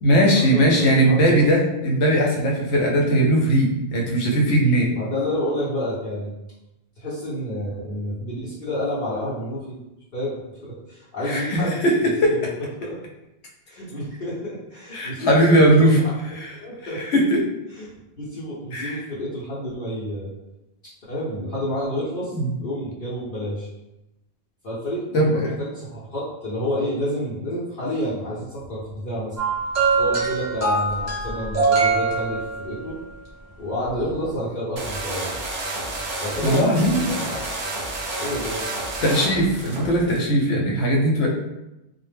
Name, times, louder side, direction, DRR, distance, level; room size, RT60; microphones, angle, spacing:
voice 1, 0.0-4.9 11.2-11.9 12.2-12.4 14.9-16.0 16.4-16.5 16.8-17.4 18.7-19.0 22.3-22.5 25.1-25.6 36.4-37.1 39.0-41.3, right 1 dB, 85° left, -1 dB, 0.9 m, -19 dB
voice 2, 0.5-1.4 4.9-6.3 7.0-9.8 10.1-10.3 10.6-11.8 12.2-12.5 12.8-13.0 13.7-16.0 16.5-17.0 17.7-20.3 21.1-23.7 24.6-29.4 30.0-33.0 33.6-35.4 36.2-37.4 38.2-38.6, left 1 dB, 60° left, -9 dB, 0.8 m, -29 dB
sound 1, 29.4-32.9 34.0-34.1, right 4 dB, 15° right, 0.8 m, -23 dB
sound 2, 34.8-40.2, right 2 dB, 60° right, 0.6 m, -30 dB
2.1 x 2.0 x 3.3 m, 0.93 s
omnidirectional pair, 1.1 m